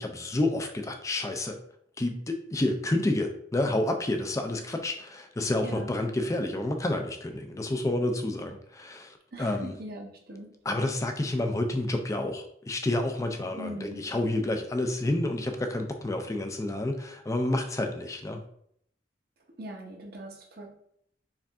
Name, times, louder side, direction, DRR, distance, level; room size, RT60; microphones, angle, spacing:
voice 1, 0.0-1.6 2.0-9.7 10.6-18.4, left 1 dB, 20° left, 5 dB, 0.4 m, -29 dB
voice 2, 5.6-5.9 9.3-10.5 13.6-14.1 19.6-20.7, right 1 dB, 60° right, 1 dB, 0.9 m, -41 dB
4.8 x 2.5 x 3.5 m, 0.68 s
head